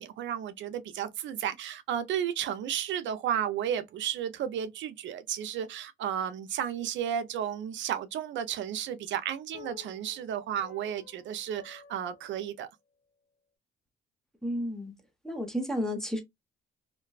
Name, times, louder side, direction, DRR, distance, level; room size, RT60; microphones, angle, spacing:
voice 1, 0.0-12.7, right 9 dB, 70° right, 0.4 m, -33 dB
sound 1, 9.5-13.1, left 10 dB, 85° left, 0.7 m, -53 dB
voice 2, 14.4-14.9 15.2-16.2, equal, 5° left, 0.8 m, -32 dB
2.5 x 2.2 x 2.2 m
cardioid pair, 90°, 20 cm